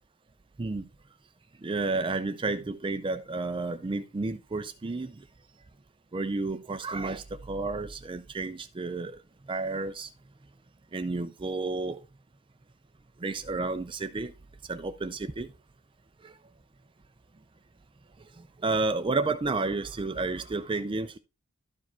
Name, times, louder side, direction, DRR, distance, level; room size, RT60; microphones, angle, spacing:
voice 1, 1.6-5.3 6.1-9.2 9.5-10.1 10.9-12.0 13.2-14.3 14.7-15.5 16.2-16.4 18.3-21.2, right 3 dB, 25° right, 0.4 m, -31 dB
12.5 x 4.8 x 4.4 m
head